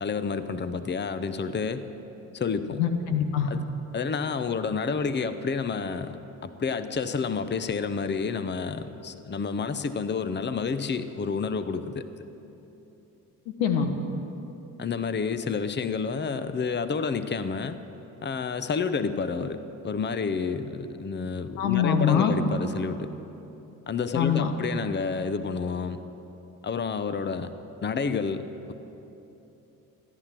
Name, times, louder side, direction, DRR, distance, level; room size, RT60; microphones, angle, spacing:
voice 1, 0.0-1.9 2.3-2.8 3.5-3.6 3.9-6.2 6.4-12.0 14.8-17.8 18.2-23.1 23.9-26.0 26.6-27.5 27.8-28.7, left 5 dB, 25° left, 11 dB, 0.8 m, -29 dB
voice 2, 2.8-3.5 13.6-13.9 21.6-22.4 24.1-24.5, left 8 dB, 85° left, 6 dB, 1.2 m, -23 dB
15.0 x 11.0 x 7.6 m, 3.0 s
hypercardioid pair, 60°, 41 cm